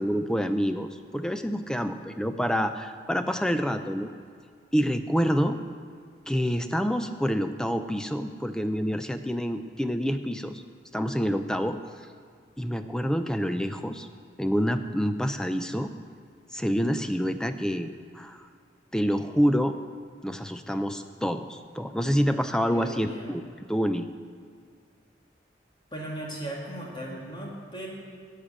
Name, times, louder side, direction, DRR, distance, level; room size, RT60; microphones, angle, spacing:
voice 1, 0.0-4.1 4.7-5.6 6.3-10.6 10.9-12.1 12.6-14.1 14.4-15.9 16.5-18.5 18.9-19.8 20.2-23.4 23.7-24.1, equal, 5° left, 8 dB, 0.4 m, -27 dB
voice 2, 22.7-23.3 25.9-27.9, right 1 dB, 25° left, -3 dB, 2.1 m, -37 dB
11.5 x 6.6 x 8.7 m, 2.1 s
head